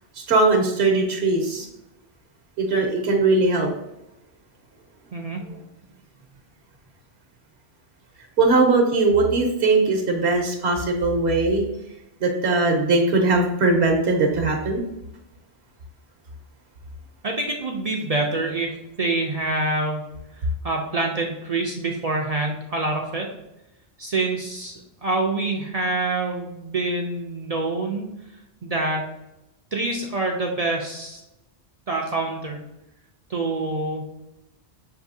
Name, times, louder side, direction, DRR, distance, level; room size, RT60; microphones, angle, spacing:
voice 1, 0.2-1.7 2.6-3.7 8.4-11.6 12.2-14.8, right 3 dB, 75° right, 2 dB, 1.0 m, -20 dB
voice 2, 17.2-20.1 20.4-23.3 24.0-28.1 28.6-29.1 29.7-31.2 31.9-32.6 33.3-34.0, right 2 dB, 50° right, 1 dB, 0.5 m, -26 dB
6.6 x 2.7 x 2.6 m, 0.89 s
omnidirectional pair, 1.1 m